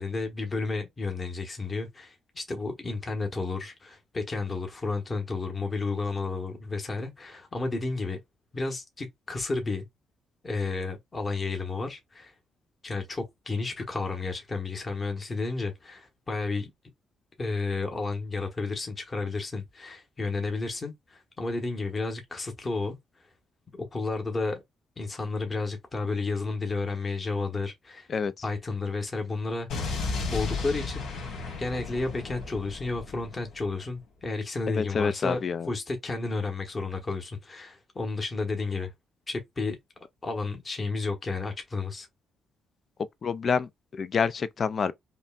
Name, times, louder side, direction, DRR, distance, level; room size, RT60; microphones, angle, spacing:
voice 1, 0.0-8.2 8.5-9.9 10.4-12.3 12.8-16.7 17.4-23.3 23.7-24.6 25.0-28.1 28.4-30.0 30.3-31.1 31.6-38.9 39.3-39.8 40.2-42.1, left 3 dB, 30° left, 1.1 m, -32 dB
Explosion, 29.7-33.7, left 4 dB, 80° left, 1.8 m, -34 dB
voice 2, 34.7-35.7 43.2-44.9, left 5 dB, 45° left, 0.3 m, -27 dB
5.2 x 2.2 x 2.4 m
cardioid pair, 90°, 0 cm